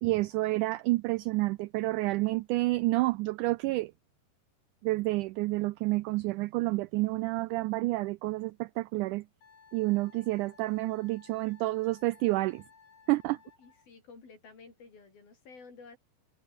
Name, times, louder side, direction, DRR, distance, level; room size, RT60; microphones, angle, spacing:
voice 1, 0.0-3.9 4.8-9.3 9.7-12.6 13.1-13.4, right 20 dB, 85° right, 1.7 m, -29 dB
Wind instrument woodwind instrument, 9.4-13.9, left 5 dB, 70° left, 6.1 m, -58 dB
voice 2, 13.6-16.0, left 4 dB, 85° left, 8.7 m, -52 dB
omnidirectional pair, 4.1 m